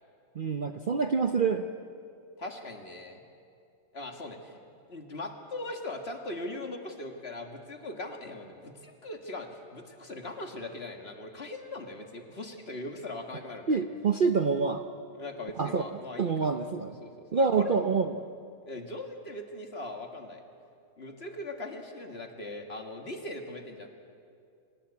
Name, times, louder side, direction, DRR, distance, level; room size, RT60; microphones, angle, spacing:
voice 1, 0.3-1.7 13.7-14.8 15.6-15.8 16.2-17.0 17.3-18.1, right 5 dB, 80° right, 7 dB, 0.4 m, -26 dB
voice 2, 2.4-3.2 3.9-4.6 4.9-13.8 15.1-17.8 18.7-20.4 21.0-23.9, left 2 dB, 35° left, 4 dB, 2.0 m, -40 dB
25.0 x 19.5 x 8.3 m, 2.4 s
omnidirectional pair, 2.0 m